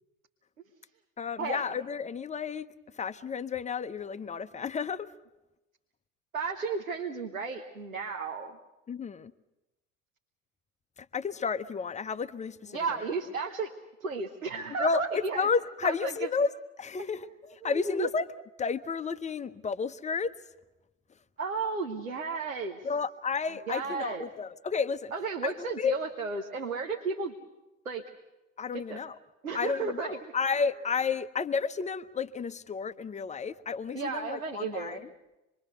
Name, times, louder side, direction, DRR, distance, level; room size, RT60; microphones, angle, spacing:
voice 1, 1.2-2.7 3.0-5.1 8.9-9.3 11.1-12.8 14.8-16.5 16.8-18.3 18.6-20.4 22.8-25.1 25.4-26.0 28.6-29.2 29.5-35.0, left 5 dB, 15° left, 12 dB, 0.8 m, -32 dB
voice 2, 6.3-8.6 12.7-13.7 14.0-15.5 15.8-16.3 17.0-17.4 17.6-18.1 21.4-22.9 23.7-24.3 25.1-27.3 27.8-28.1 28.7-29.0 29.4-30.2 33.9-35.0, right 4 dB, 85° right, 4 dB, 1.2 m, -33 dB
26.0 x 22.0 x 6.8 m, 1.0 s
figure-of-eight pair, 70°, 40 cm